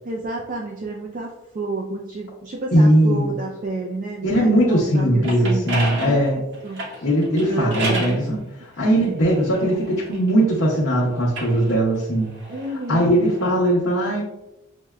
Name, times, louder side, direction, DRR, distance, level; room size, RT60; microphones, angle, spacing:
voice 1, 0.0-5.8 6.0-6.2 6.6-7.1 7.5-8.3 8.7-9.4 12.5-13.2, right 2 dB, 40° right, -1 dB, 0.4 m, -30 dB
voice 2, 2.7-3.3 4.2-6.4 7.0-12.3 12.9-14.2, right 1 dB, 65° left, -6 dB, 0.7 m, -19 dB
sound 1, 5.0-8.2 9.0-10.7 11.2-13.5, right 1 dB, 60° right, 0.9 m, -32 dB
5.8 x 2.1 x 2.3 m, 0.91 s
head